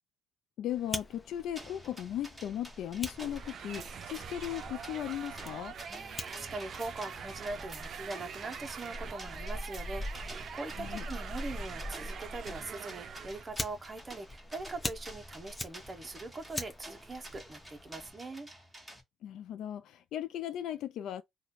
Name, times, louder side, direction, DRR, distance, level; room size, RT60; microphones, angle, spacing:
voice 1, 0.6-5.8 10.8-11.1 19.2-21.2, left 11 dB, 80° left, 0.3 m, -37 dB
Fire, 0.7-18.1, left 1 dB, 25° left, 0.8 m, -44 dB
sound 1, 1.6-19.0, right 1 dB, 5° right, 1.3 m, -51 dB
sound 2, 3.1-13.5, right 7 dB, 60° right, 0.5 m, -44 dB
voice 2, 5.9-18.5, right 2 dB, 30° right, 0.7 m, -42 dB
3.1 x 2.2 x 4.0 m
cardioid pair, 90°, 0 cm